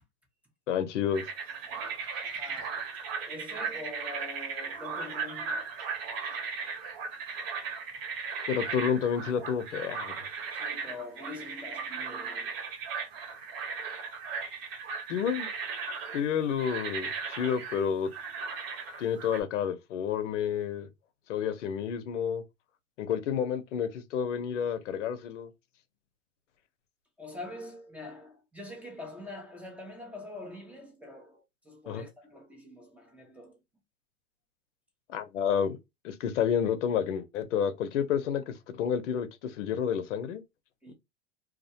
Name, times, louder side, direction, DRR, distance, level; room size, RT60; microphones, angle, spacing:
voice 1, 0.7-1.2 8.5-10.1 15.1-15.5 16.1-18.1 19.0-20.9 21.3-22.4 23.0-25.5 31.9-32.0 35.1-35.8 36.0-40.4, left 8 dB, 85° left, 0.6 m, -30 dB
sound 1, 1.1-19.4, right 5 dB, 55° right, 1.1 m, -37 dB
voice 2, 2.2-2.9 3.2-5.6 10.5-12.6 27.2-33.6 40.8-40.9, left 2 dB, 5° right, 0.5 m, -44 dB
2.3 x 2.1 x 2.7 m
hypercardioid pair, 120°, 35 cm